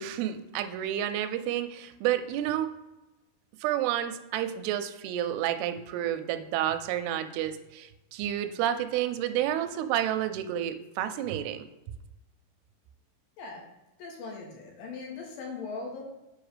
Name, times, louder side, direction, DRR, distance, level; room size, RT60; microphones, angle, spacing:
voice 1, 0.0-2.7 3.6-11.7, right 11 dB, 85° right, 9 dB, 2.3 m, -30 dB
voice 2, 14.0-16.0, left 4 dB, 70° left, 0 dB, 2.4 m, -39 dB
8.0 x 3.1 x 5.0 m, 1.0 s
omnidirectional pair, 4.9 m